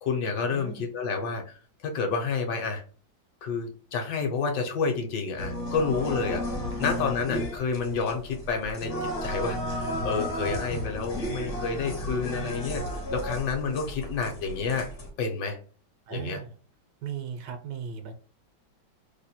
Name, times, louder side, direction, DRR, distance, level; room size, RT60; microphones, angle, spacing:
voice 1, 0.0-1.5 1.8-2.8 3.4-8.9 9.2-12.8 13.1-14.9 15.2-15.6 16.1-16.4, left 5 dB, 70° left, 3 dB, 1.2 m, -29 dB
voice 2, 0.5-0.9 6.7-7.2 12.4-12.6 14.4-14.5 16.1-16.5 17.0-18.1, right 7 dB, 75° right, 6 dB, 1.1 m, -38 dB
sound 1, 5.4-15.1, left 1 dB, 50° left, 0.7 m, -33 dB
3.1 x 2.1 x 4.1 m, 0.41 s
omnidirectional pair, 2.0 m